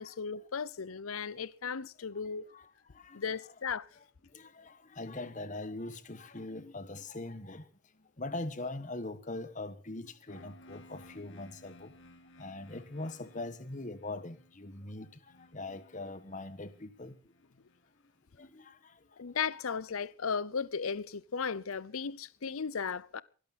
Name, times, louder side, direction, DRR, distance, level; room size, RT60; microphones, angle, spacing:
voice 1, 0.0-2.5 3.1-3.9 19.2-23.2, left 6 dB, 90° left, 0.7 m, -36 dB
voice 2, 4.3-7.7 8.2-11.9 12.4-15.1 15.5-17.1 18.4-18.9, left 2 dB, 35° left, 1.4 m, -41 dB
sound 1, 10.3-18.1, left 1 dB, 60° left, 2.1 m, -59 dB
23.5 x 11.5 x 4.2 m
head